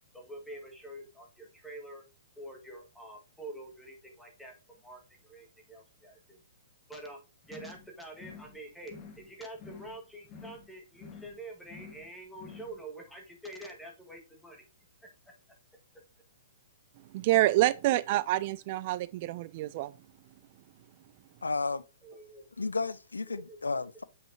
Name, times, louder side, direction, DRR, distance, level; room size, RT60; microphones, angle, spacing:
voice 1, 0.1-2.0 2.4-6.4 6.9-7.2 7.5-14.7 15.0-15.3 22.0-22.4 23.2-23.6, right 1 dB, ahead, 1.9 m, -46 dB
sound 1, 7.4-7.9 8.1-8.6 8.8-9.3 9.5-10.0 10.2-10.7 10.9-11.4 11.6-12.1 12.3-12.8, left 5 dB, 30° left, 2.4 m, -49 dB
voice 2, 17.1-19.9, right 17 dB, 45° right, 0.3 m, -27 dB
voice 3, 21.4-21.8 22.6-24.0, left 3 dB, 90° left, 0.4 m, -32 dB
7.6 x 5.8 x 2.9 m
hypercardioid pair, 125°, 0 cm